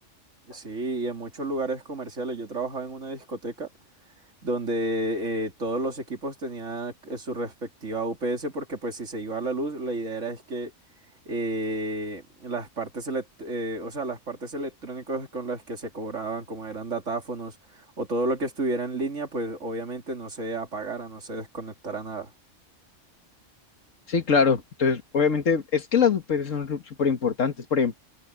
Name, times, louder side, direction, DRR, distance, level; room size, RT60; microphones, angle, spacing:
voice 1, 0.5-3.7 4.4-10.7 11.3-22.3, right 2 dB, 75° right, 3.2 m, -31 dB
voice 2, 24.1-28.0, left 6 dB, 85° left, 2.0 m, -23 dB
omnidirectional pair, 1.3 m